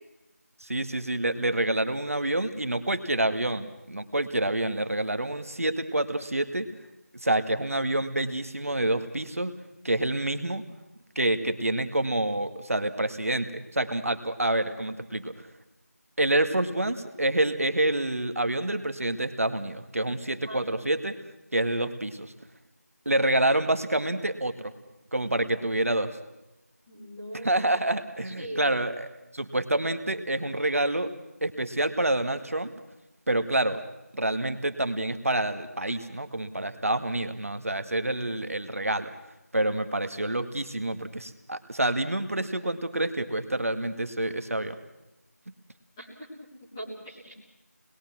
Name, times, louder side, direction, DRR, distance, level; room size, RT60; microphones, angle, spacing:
voice 1, 0.6-6.7 7.1-9.5 9.8-10.6 11.2-15.5 16.2-21.2 21.5-22.3 23.1-24.7 25.1-26.2 27.4-29.1 29.3-31.1 31.4-32.7 33.3-33.8 34.1-39.1 39.5-44.8, right 1 dB, 60° right, 8 dB, 2.0 m, -27 dB
voice 2, 26.9-27.5 28.2-28.7 40.0-40.1 46.0-46.3 46.7-47.3, right 1 dB, ahead, -15 dB, 0.9 m, -40 dB
25.5 x 21.0 x 6.1 m, 0.95 s
figure-of-eight pair, 180°, 9 cm